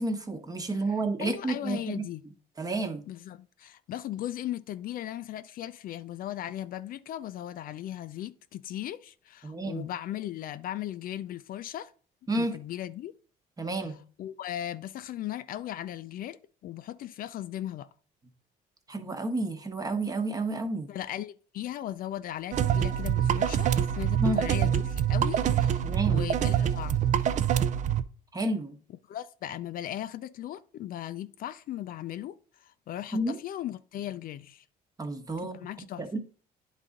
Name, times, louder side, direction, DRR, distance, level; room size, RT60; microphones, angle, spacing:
voice 1, 0.0-2.0 2.6-3.0 9.4-9.8 12.3-12.6 13.6-14.0 18.9-20.9 24.2-24.4 25.8-26.2 28.3-28.8 33.1-33.4 35.0-35.6 36.0-36.2, right 2 dB, 20° right, 1.0 m, -30 dB
voice 2, 0.9-2.2 3.1-11.9 12.4-13.1 13.8-17.9 20.9-27.1 29.1-34.6 35.4-36.0, left 12 dB, 60° left, 0.4 m, -37 dB
sound 1, 22.5-28.0, right 9 dB, 45° right, 0.5 m, -25 dB
10.0 x 4.0 x 3.7 m
cardioid pair, 110°, 17 cm